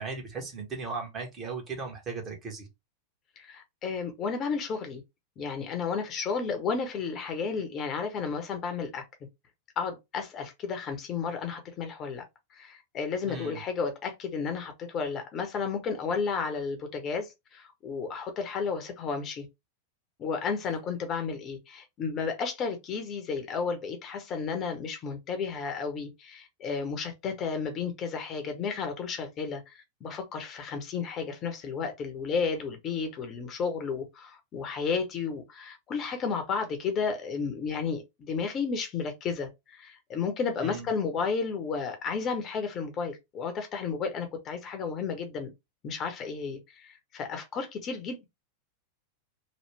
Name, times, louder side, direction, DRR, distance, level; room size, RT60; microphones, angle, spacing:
voice 1, 0.0-2.7 13.2-13.6 40.6-40.9, right 4 dB, 30° right, 1.3 m, -37 dB
voice 2, 3.4-5.0 5.4-9.0 9.8-12.2 12.5-19.4 20.2-45.5 45.8-48.2, left 5 dB, 30° left, 0.8 m, -32 dB
3.2 x 2.3 x 3.3 m
figure-of-eight pair, 90°, 0 cm